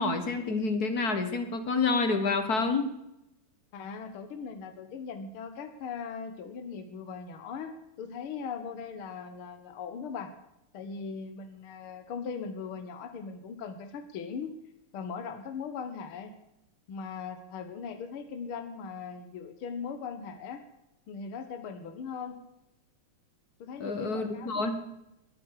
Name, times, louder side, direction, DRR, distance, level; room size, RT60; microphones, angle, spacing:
voice 1, 0.0-2.9 23.8-24.8, left 3 dB, 45° left, 8 dB, 1.8 m, -28 dB
voice 2, 3.7-10.3 10.7-14.5 14.9-16.3 16.9-20.6 21.1-22.4 23.6-24.8, left 6 dB, 75° left, 7 dB, 2.1 m, -39 dB
21.0 x 9.6 x 4.8 m, 0.85 s
omnidirectional pair, 2.4 m